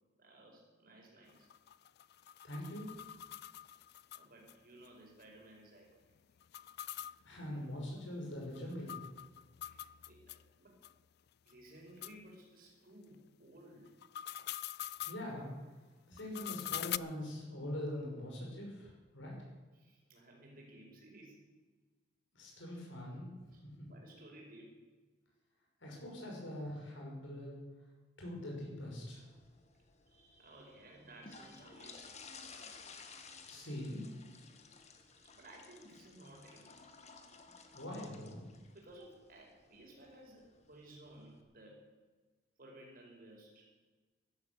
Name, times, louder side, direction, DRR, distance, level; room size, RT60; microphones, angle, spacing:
voice 1, 0.2-1.5 4.1-5.9 9.7-10.8 11.4-13.9 19.7-21.4 23.5-24.8 30.1-32.3 35.2-36.8 38.7-41.8 42.6-43.7, right 1 dB, 50° right, 0 dB, 4.9 m, -57 dB
sound 1, 1.3-4.5 4.8-4.9 5.2-5.3 6.4-10.4 10.8-10.9 11.5-11.6 12.0-12.1 13.9-15.2 16.2-17.0, left 12 dB, 60° left, 0.4 m, -44 dB
voice 2, 2.4-2.9 7.2-9.0 15.0-15.6 16.1-19.3 22.3-23.3 23.6-23.9 25.8-27.6 28.2-29.2 33.4-34.1 37.7-38.5, left 1 dB, 90° left, -1 dB, 5.6 m, -43 dB
sound 2, 29.0-41.4, left 4 dB, 35° left, 1.6 m, -56 dB
14.5 x 12.0 x 7.1 m, 1.3 s
head